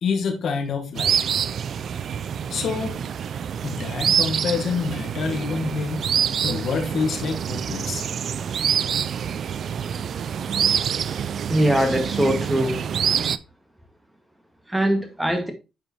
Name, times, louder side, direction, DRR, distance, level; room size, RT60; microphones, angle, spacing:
voice 1, 0.0-1.2 2.5-3.0 3.6-6.0 6.4-8.0, left 5 dB, 60° left, 1.7 m, -27 dB
sound 1, 1.0-13.4, right 8 dB, 60° right, 0.4 m, -26 dB
voice 2, 11.5-12.8 14.7-15.5, equal, 10° right, 1.8 m, -22 dB
9.0 x 5.0 x 2.9 m
cardioid pair, 90°, 0 cm